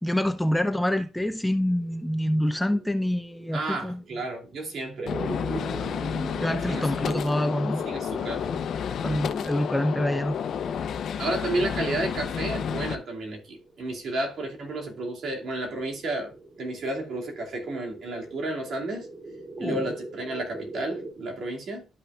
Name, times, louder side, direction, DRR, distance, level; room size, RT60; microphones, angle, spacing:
voice 1, 0.0-4.0 6.4-7.8 9.0-10.4 19.6-19.9, left 1 dB, 5° left, 0.6 m, -26 dB
sound 1, 1.3-21.1, right 2 dB, 30° right, 2.7 m, -43 dB
voice 2, 3.5-5.2 6.7-7.2 7.4-7.5 7.9-8.5 11.2-19.1 19.6-21.9, right 2 dB, 60° right, 2.5 m, -32 dB
Gunshot gunfire, 5.1-12.9, left 7 dB, 65° left, 0.8 m, -30 dB
12.0 x 5.7 x 2.4 m
cardioid pair, 90°, 0 cm